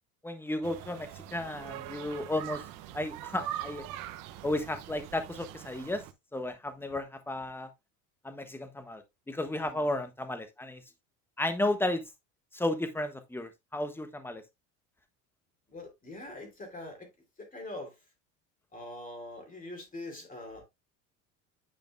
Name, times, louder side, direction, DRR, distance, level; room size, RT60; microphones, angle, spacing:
voice 1, 0.2-2.6 2.9-3.8 4.4-6.0 6.3-7.7 8.2-10.8 11.4-12.0 12.5-14.4, left 1 dB, 5° left, 1.2 m, -33 dB
sound 1, 0.6-6.1, right 12 dB, 60° right, 0.9 m, -42 dB
voice 2, 9.6-10.1 15.7-17.1 17.4-17.9 18.7-20.6, left 2 dB, 20° left, 3.0 m, -43 dB
9.5 x 5.1 x 2.2 m
supercardioid pair, 105°, 37 cm